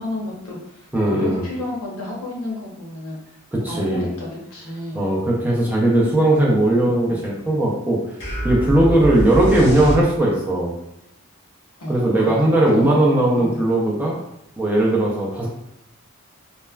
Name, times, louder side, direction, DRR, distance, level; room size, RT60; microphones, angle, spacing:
voice 1, 0.0-3.2 3.7-5.0 6.4-7.3 11.8-13.6, left 1 dB, 90° left, -3 dB, 0.9 m, -32 dB
voice 2, 0.9-1.4 3.5-4.1 4.9-8.0 8.4-10.7 11.9-14.2 14.6-15.5, right 1 dB, 10° right, -4 dB, 0.4 m, -18 dB
sound 1, 8.2-10.5, right 1 dB, 55° left, 1.3 m, -25 dB
3.1 x 2.1 x 2.2 m, 0.82 s
head